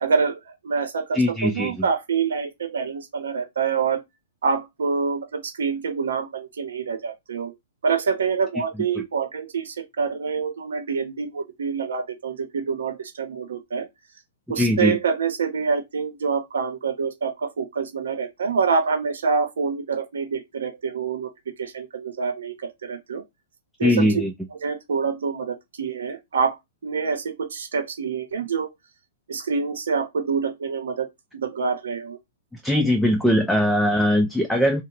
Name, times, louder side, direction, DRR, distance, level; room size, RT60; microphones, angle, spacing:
voice 1, 0.0-4.0 4.4-7.5 7.8-13.9 14.5-21.3 21.6-23.2 23.8-24.1 24.6-26.6 26.8-28.7 29.3-31.1 31.3-32.2, right 5 dB, 90° right, 0.8 m, -26 dB
voice 2, 1.1-1.7 14.6-15.0 23.8-24.3 32.6-34.8, left 1 dB, ahead, 0.3 m, -20 dB
2.7 x 2.1 x 3.9 m
hypercardioid pair, 155°, 0 cm